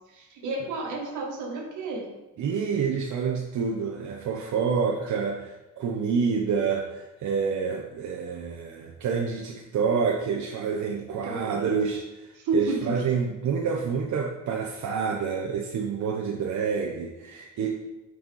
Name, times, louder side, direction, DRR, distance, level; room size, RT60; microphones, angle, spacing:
voice 1, 0.1-2.1 11.0-11.7 12.3-13.0, right 2 dB, 90° right, 0 dB, 1.9 m, -31 dB
voice 2, 2.4-12.3 12.5-17.7, right 6 dB, 70° right, -2 dB, 1.0 m, -28 dB
6.2 x 4.7 x 5.5 m, 1.0 s
cardioid pair, 90°, 30 cm